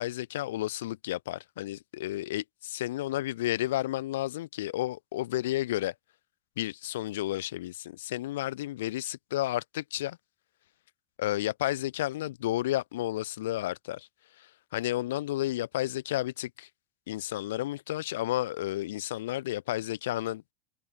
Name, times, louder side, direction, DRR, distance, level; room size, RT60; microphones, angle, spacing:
voice 1, 0.0-5.9 6.6-10.2 11.2-14.1 14.4-16.7 17.1-20.4, left 15 dB, 80° left, 1.7 m, -32 dB
supercardioid pair, 115°, 0 cm